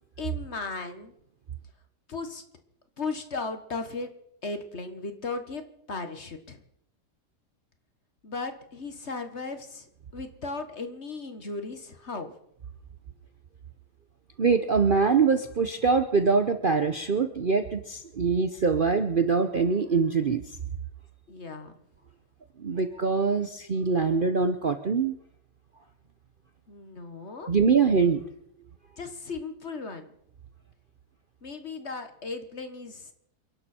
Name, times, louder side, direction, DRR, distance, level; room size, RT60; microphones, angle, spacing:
voice 1, 0.2-1.1 2.1-2.4 3.0-4.1 4.4-5.6 5.9-6.6 8.2-9.9 10.1-12.3 21.3-21.7 26.7-27.5 29.0-30.1 31.4-33.1, left 3 dB, 45° left, 8 dB, 1.6 m, -36 dB
voice 2, 14.4-20.6 22.6-25.2 27.5-28.2, right 5 dB, 40° right, 8 dB, 0.8 m, -24 dB
28.0 x 11.5 x 4.4 m, 0.72 s
omnidirectional pair, 1.8 m